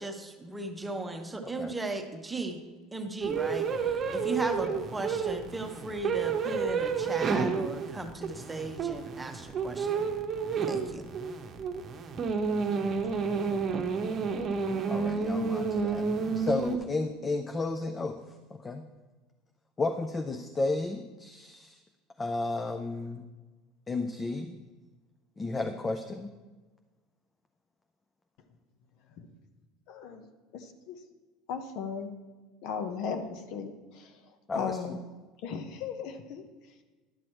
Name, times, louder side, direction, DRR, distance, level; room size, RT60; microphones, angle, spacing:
voice 1, 0.0-2.6 2.9-10.1 10.7-11.1, right 2 dB, 10° right, 5 dB, 0.9 m, -37 dB
voice 2, 1.4-1.7 4.6-4.8 14.9-16.1 16.4-18.2 18.5-18.8 19.8-21.8 22.2-23.2 23.9-24.6 25.4-26.3 34.5-34.8, left 3 dB, 20° left, 6 dB, 0.5 m, -33 dB
sound 1, 3.2-16.8, right 5 dB, 35° right, 0.9 m, -30 dB
voice 3, 29.9-30.3 30.5-31.0 31.5-32.1 32.6-35.0 35.4-36.7, left 6 dB, 65° left, 7 dB, 0.9 m, -37 dB
11.0 x 6.2 x 4.4 m, 1.3 s
supercardioid pair, 110°, 0 cm